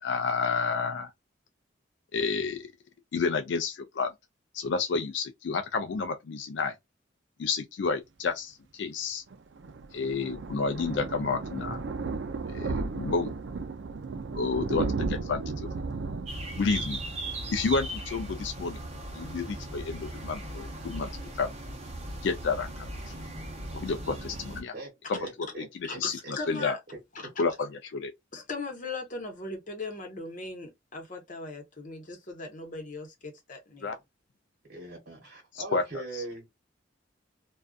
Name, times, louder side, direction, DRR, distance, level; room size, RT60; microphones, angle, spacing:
voice 1, 0.0-1.1 2.1-2.7 3.1-4.1 4.5-6.7 7.4-9.2 9.9-11.8 12.5-13.3 14.3-15.7 16.6-17.0 17.5-18.8 19.1-21.1 21.4-21.5 22.2-22.9 23.7-24.7 25.1-25.2 25.6-26.2 26.5-26.8 27.4-28.1 33.8-33.9 35.5-36.2, left 4 dB, 70° left, 0.4 m, -30 dB
Thunder, 9.3-18.7 19.0-19.2 19.5-19.6 19.8-19.9, right 3 dB, 75° right, 0.4 m, -35 dB
sound 1, 16.3-24.6, right 1 dB, 35° right, 0.8 m, -38 dB
voice 2, 24.7-26.3 26.9-27.3 34.7-36.5, right 3 dB, 55° right, 1.2 m, -42 dB
voice 3, 25.8-26.8 27.1-27.4 28.3-34.0, left 3 dB, 45° left, 0.9 m, -39 dB
2.5 x 2.3 x 2.3 m
head